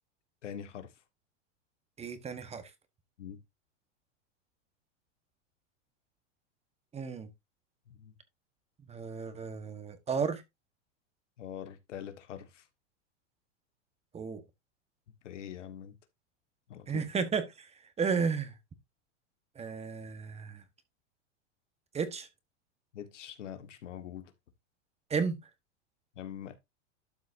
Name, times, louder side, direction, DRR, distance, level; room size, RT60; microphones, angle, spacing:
voice 1, 0.4-0.9 3.2-3.4 7.9-8.1 11.4-12.6 15.2-16.0 16.7-17.1 22.9-24.3 26.2-26.5, left 9 dB, 85° left, 1.7 m, -43 dB
voice 2, 2.0-2.6 6.9-7.3 8.9-10.4 14.1-14.4 16.9-17.7 18.0-18.5 19.5-20.6 21.9-22.3 25.1-25.4, right 5 dB, 15° right, 1.3 m, -33 dB
12.0 x 6.1 x 2.7 m
hypercardioid pair, 125°, 35 cm